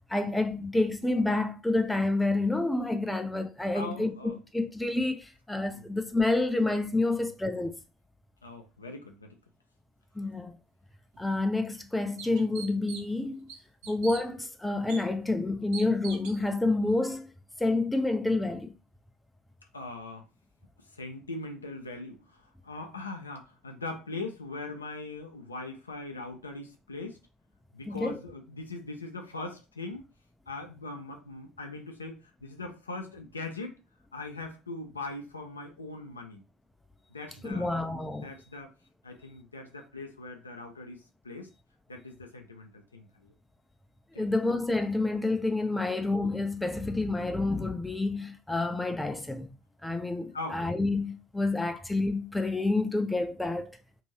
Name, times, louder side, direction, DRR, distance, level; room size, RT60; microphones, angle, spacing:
voice 1, 0.1-7.8 10.2-10.6 11.2-13.5 13.9-17.3 17.6-18.8 27.9-28.2 37.4-38.3 44.2-49.5 49.8-53.8, left 2 dB, 5° left, 0.5 m, -28 dB
voice 2, 3.7-4.4 5.7-5.8 7.1-7.3 8.4-9.3 13.8-14.0 19.7-20.2 20.9-27.2 27.7-30.0 30.5-33.8 34.1-36.4 37.1-38.7 39.0-41.5 41.9-43.3 44.1-44.3 45.7-45.8 50.3-50.6, left 2 dB, 85° left, 0.5 m, -41 dB
sound 1, 11.1-11.2 11.7-11.8 12.2-13.2 13.5-14.2 14.9-15.0 15.7-16.4, right 5 dB, 60° right, 0.8 m, -42 dB
2.7 x 2.6 x 3.1 m
figure-of-eight pair, 65°, 0 cm